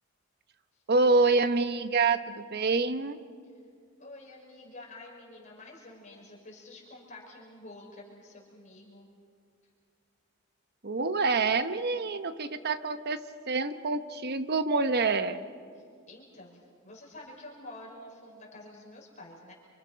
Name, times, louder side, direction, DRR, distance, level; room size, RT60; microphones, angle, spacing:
voice 1, 0.9-3.2 10.8-15.4, right 3 dB, 50° right, 10 dB, 1.0 m, -27 dB
voice 2, 4.0-9.1 15.7-19.5, left 2 dB, 35° left, -3 dB, 5.5 m, -49 dB
29.5 x 26.0 x 5.7 m, 2.2 s
head